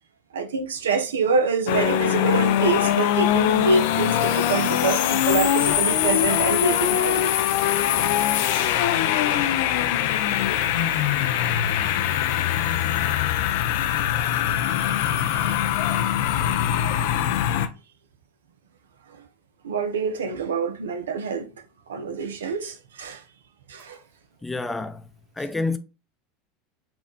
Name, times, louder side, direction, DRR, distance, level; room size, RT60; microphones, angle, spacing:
voice 1, 0.3-7.3 14.5-15.6 19.6-21.5 21.9-23.2 23.7-24.0, right 4 dB, 90° right, 0.6 m, -26 dB
sound 1, 1.7-17.7, left 11 dB, 70° left, 0.4 m, -22 dB
voice 2, 24.4-25.1 25.4-25.8, left 3 dB, 10° left, 0.5 m, -28 dB
4.3 x 2.4 x 3.8 m
hypercardioid pair, 95°, 0 cm